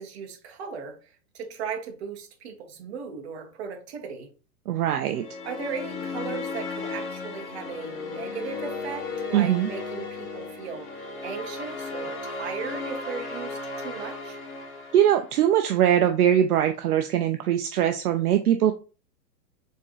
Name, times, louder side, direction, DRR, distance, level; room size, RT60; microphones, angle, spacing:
voice 1, 0.0-4.3 5.4-14.4, right 6 dB, 40° right, 1.0 m, -37 dB
voice 2, 4.7-5.3 9.3-9.7 14.9-18.7, right 10 dB, 65° right, 0.6 m, -21 dB
sound 1, 5.1-15.5, left 3 dB, 60° left, 1.8 m, -35 dB
4.4 x 3.7 x 3.0 m
hypercardioid pair, 165°, 49 cm